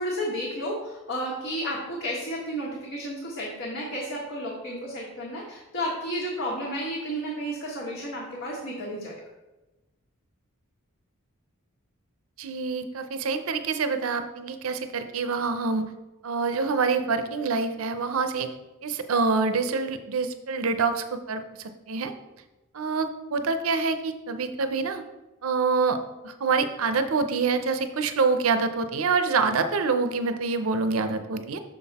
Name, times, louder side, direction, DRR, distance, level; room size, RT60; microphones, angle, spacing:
voice 1, 0.0-9.1, equal, 60° left, -4 dB, 1.5 m, -32 dB
voice 2, 12.4-15.9 16.2-18.5 18.8-22.1 22.7-25.0 25.4-26.0 26.2-31.6, right 4 dB, 75° right, 9 dB, 0.6 m, -26 dB
6.4 x 5.8 x 4.1 m, 1.1 s
head